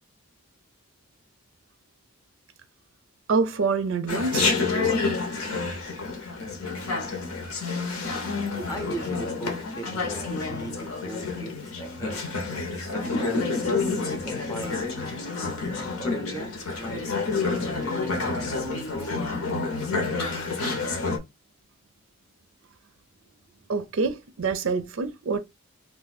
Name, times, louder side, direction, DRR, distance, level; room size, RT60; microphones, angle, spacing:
voice 1, 3.3-4.5 23.7-25.4, right 4 dB, 65° right, 0.5 m, -26 dB
Chatter, 4.1-21.2, left 4 dB, 80° left, 0.8 m, -29 dB
voice 2, 8.7-12.2 12.7-17.1 17.8-19.2, right 2 dB, 15° left, 0.7 m, -39 dB
2.6 x 2.3 x 4.0 m
head